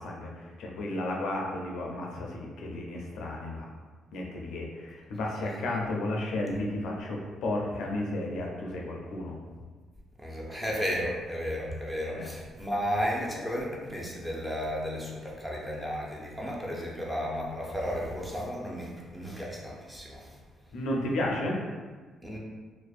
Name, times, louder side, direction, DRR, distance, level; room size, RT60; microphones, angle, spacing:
voice 1, 0.0-3.7 4.1-9.3 12.1-12.3 20.7-21.6, left 1 dB, 80° left, -1 dB, 0.4 m, -33 dB
voice 2, 10.2-20.3 22.2-22.4, equal, 10° right, -3 dB, 0.5 m, -33 dB
2.5 x 2.0 x 2.4 m, 1.4 s
cardioid pair, 90°, 0 cm